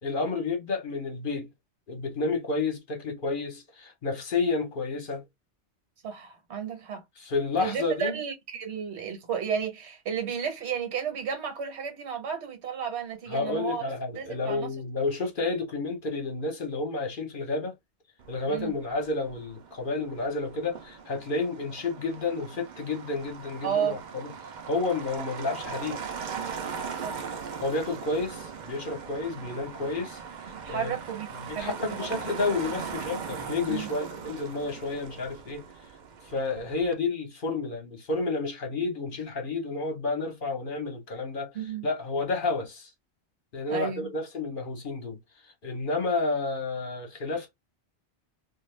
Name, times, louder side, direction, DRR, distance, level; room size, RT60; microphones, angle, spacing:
voice 1, 0.0-1.5 1.9-5.2 7.2-8.2 13.3-17.7 18.3-24.3 24.7-26.0 27.6-30.2 30.7-30.9 31.4-35.6 36.2-41.5 41.8-42.9 43.5-45.2 45.6-47.5, left 3 dB, 50° left, 0.9 m, -30 dB
voice 2, 6.0-7.0 7.6-13.8 14.1-14.7 18.5-18.7 23.6-24.0 27.0-27.2 30.5-32.0 33.7-33.9 41.5-41.9 43.7-44.1, right 7 dB, 70° right, 1.2 m, -32 dB
Motor vehicle (road), 18.2-36.9, right 6 dB, 50° right, 0.6 m, -40 dB
2.5 x 2.3 x 3.2 m
omnidirectional pair, 1.2 m